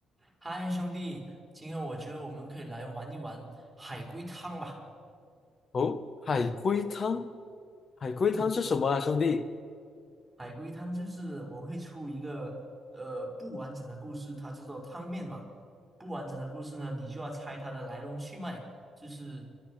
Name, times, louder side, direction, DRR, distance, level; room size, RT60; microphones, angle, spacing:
voice 1, 0.2-4.8 8.3-8.4 10.4-12.6 12.9-15.5 16.0-18.7 19.0-19.5, right 1 dB, 10° right, 5.3 m, -39 dB
voice 2, 5.7-7.3 8.0-9.5, left 5 dB, 45° left, 0.9 m, -28 dB
30.0 x 13.5 x 6.5 m
supercardioid pair, 70°, 0 cm